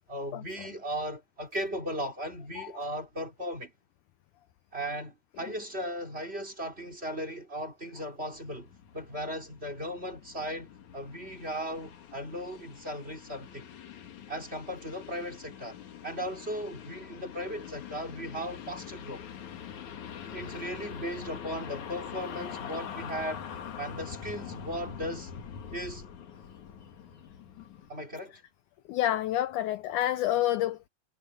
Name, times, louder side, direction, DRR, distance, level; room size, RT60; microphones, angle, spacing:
voice 1, 0.1-3.7 4.7-13.7 14.3-15.8 16.0-19.2 20.3-23.4 23.8-25.3 25.7-26.1 27.9-28.3, equal, 15° right, 3.1 m, -37 dB
sound 1, 8.3-27.9, left 8 dB, 60° left, 3.0 m, -44 dB
voice 2, 28.9-30.9, left 13 dB, 80° left, 1.9 m, -28 dB
omnidirectional pair, 4.3 m